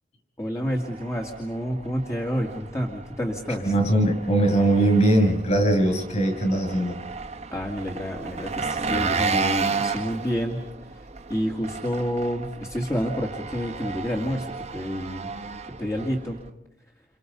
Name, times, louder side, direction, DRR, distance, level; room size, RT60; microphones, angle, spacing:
voice 1, 0.4-3.7 7.5-10.6 10.9-15.3 15.8-16.4, equal, 15° left, 0 dB, 2.4 m, -29 dB
Engine, 0.7-16.5, right 4 dB, 40° right, 1.4 m, -33 dB
voice 2, 3.6-7.0, right 1 dB, 40° left, 4 dB, 7.4 m, -21 dB
30.0 x 29.5 x 5.5 m, 0.84 s
head